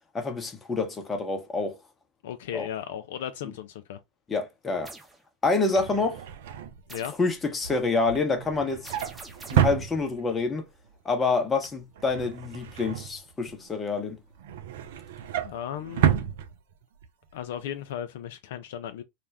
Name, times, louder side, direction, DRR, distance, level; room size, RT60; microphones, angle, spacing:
voice 1, 0.1-1.8 2.5-2.7 4.3-4.9 5.4-6.2 7.2-8.9 9.5-10.7 11.0-14.2, left 3 dB, 20° left, 0.8 m, -27 dB
voice 2, 2.2-4.0 6.9-7.1 15.4-16.2 17.3-19.0, left 10 dB, 70° left, 0.3 m, -36 dB
sound 1, 4.8-5.2 6.9-7.3 8.8-9.8, right 2 dB, 10° right, 0.8 m, -45 dB
Drawer open or close, 5.5-10.5 10.9-11.2 11.5-13.7 14.1-17.1 17.4-17.6 17.9-18.0, right 10 dB, 70° right, 0.4 m, -30 dB
2.4 x 2.1 x 3.2 m
hypercardioid pair, 95°, 0 cm